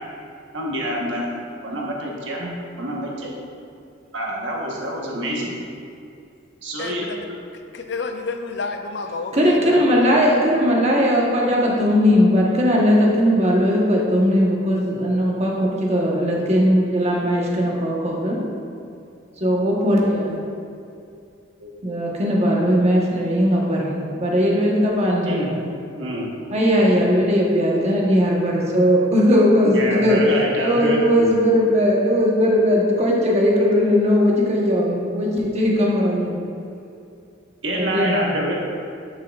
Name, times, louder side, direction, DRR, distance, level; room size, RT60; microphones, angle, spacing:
voice 1, 0.5-1.3 1.6-3.3 4.1-5.5 6.6-7.4 21.6-22.0 25.0-25.5 25.9-26.3 29.6-31.3 37.6-38.5, right 1 dB, 70° right, -2 dB, 1.2 m, -27 dB
voice 2, 6.8-7.3 7.7-10.2, left 4 dB, 60° left, 6 dB, 0.5 m, -30 dB
voice 3, 9.3-18.4 19.4-20.4 21.8-25.6 26.5-30.2 30.6-36.4 37.7-38.1, equal, 35° right, -3 dB, 1.1 m, -18 dB
10.5 x 5.6 x 2.4 m, 2.5 s
head